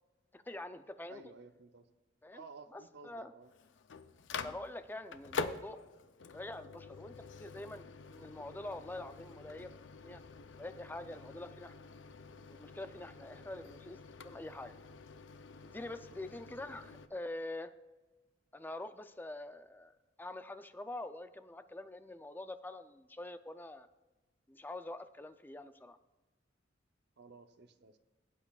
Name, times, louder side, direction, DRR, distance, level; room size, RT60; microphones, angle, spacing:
voice 1, 0.3-1.2 2.2-2.4 2.7-3.3 4.4-5.8 6.3-9.7 10.0-10.2 10.6-11.7 12.5-14.7 15.6-17.7 18.5-19.9 20.2-23.9 24.5-26.0, left 2 dB, 10° left, 11 dB, 0.4 m, -45 dB
voice 2, 1.1-1.9 2.3-3.5 3.9-4.0 13.5-13.7 16.1-16.3 27.2-28.0, right 4 dB, 60° right, 8 dB, 0.7 m, -55 dB
Microwave oven, 3.4-17.1, left 4 dB, 70° left, 0.6 m, -47 dB
17.0 x 8.5 x 2.4 m, 1.2 s
head